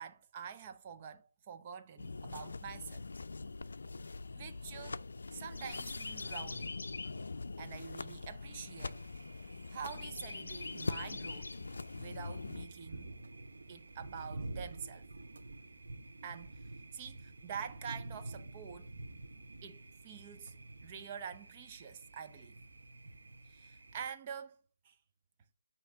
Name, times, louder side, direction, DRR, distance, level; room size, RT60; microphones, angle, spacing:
voice 1, 0.0-3.0 4.4-5.0 5.3-6.8 7.6-9.0 9.7-11.6 11.9-13.2 13.7-15.1 16.2-16.6 16.9-18.9 19.6-20.5 20.8-22.6 23.4-24.6 24.8-25.0, right 7 dB, 25° right, 0.6 m, -46 dB
sound 1, 2.0-12.7, left 3 dB, 75° left, 0.4 m, -42 dB
Thunder, 8.4-24.1, right 2 dB, 75° right, 1.0 m, -50 dB
7.9 x 2.9 x 6.2 m
hypercardioid pair, 160°, 0 cm